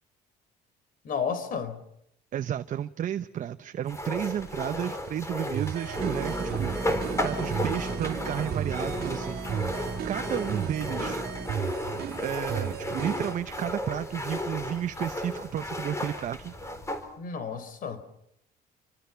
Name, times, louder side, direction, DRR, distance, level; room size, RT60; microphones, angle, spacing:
voice 1, 1.0-1.8 17.2-18.0, left 6 dB, 55° left, 4.0 m, -32 dB
voice 2, 2.3-11.2 12.2-16.5, right 10 dB, 50° right, 0.8 m, -33 dB
sound 1, 3.9-17.1, left 1 dB, 15° left, 4.2 m, -34 dB
sound 2, 5.5-13.4, right 9 dB, 65° right, 2.1 m, -35 dB
sound 3, 6.0-11.5, right 3 dB, 10° right, 4.7 m, -37 dB
28.0 x 25.0 x 5.8 m
cardioid pair, 110°, 17 cm